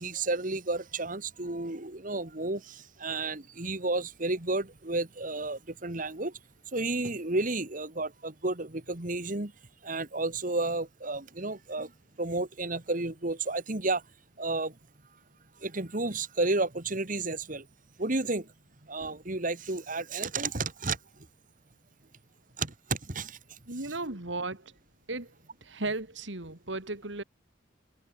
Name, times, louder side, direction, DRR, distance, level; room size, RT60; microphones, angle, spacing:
voice 1, 0.0-6.4 6.7-9.5 9.8-11.9 12.2-14.0 14.4-14.8 15.6-17.7 18.0-18.5 18.8-21.3 22.6-23.6, right 2 dB, 45° right, 2.0 m, -32 dB
voice 2, 23.7-24.7 25.1-25.3 25.6-27.2, right 2 dB, 70° right, 2.7 m, -35 dB
head